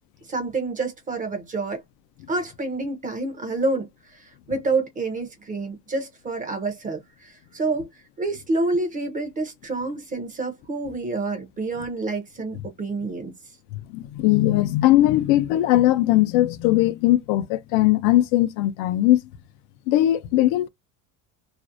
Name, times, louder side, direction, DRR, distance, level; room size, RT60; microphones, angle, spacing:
voice 1, 0.3-1.8 2.3-13.3, right 3 dB, 20° right, 0.5 m, -28 dB
voice 2, 13.7-19.2 19.9-20.7, left 15 dB, 75° left, 0.5 m, -19 dB
2.5 x 2.0 x 2.5 m
cardioid pair, 155°, 37 cm